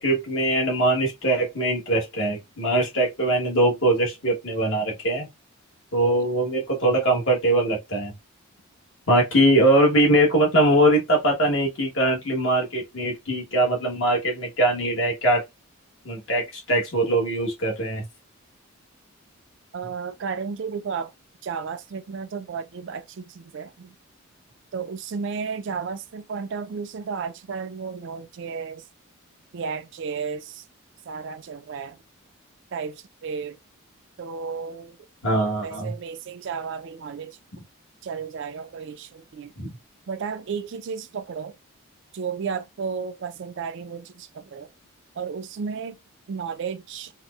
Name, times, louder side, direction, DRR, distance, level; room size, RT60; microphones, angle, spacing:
voice 1, 0.0-5.3 5.9-8.1 9.1-15.4 16.0-18.0 35.2-35.9 37.5-37.6 39.6-39.8, right 1 dB, 55° left, 1.2 m, -22 dB
voice 2, 19.7-21.1 21.4-24.0 24.7-28.8 29.5-30.6 31.1-32.0 32.7-33.6 34.2-35.0 35.6-37.4 38.0-39.5 40.1-41.6 42.1-44.7 45.2-46.0 46.3-47.1, right 5 dB, 55° right, 0.3 m, -33 dB
4.2 x 2.1 x 2.3 m
head